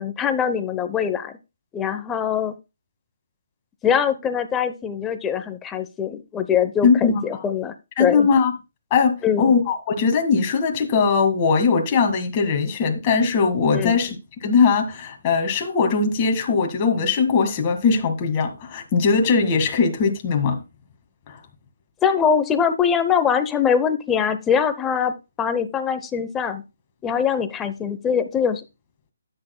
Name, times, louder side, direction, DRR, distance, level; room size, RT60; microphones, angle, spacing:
voice 1, 0.0-1.3 1.7-2.5 3.8-7.7 8.0-8.3 9.2-9.5 13.7-14.0 22.0-25.1 25.4-26.6 27.0-28.6, left 7 dB, 10° left, 0.8 m, -22 dB
voice 2, 6.8-7.2 8.0-8.5 8.9-14.2 14.4-20.6 21.3-21.4, left 5 dB, 25° left, 1.8 m, -20 dB
12.5 x 8.5 x 2.3 m
hypercardioid pair, 155°, 0 cm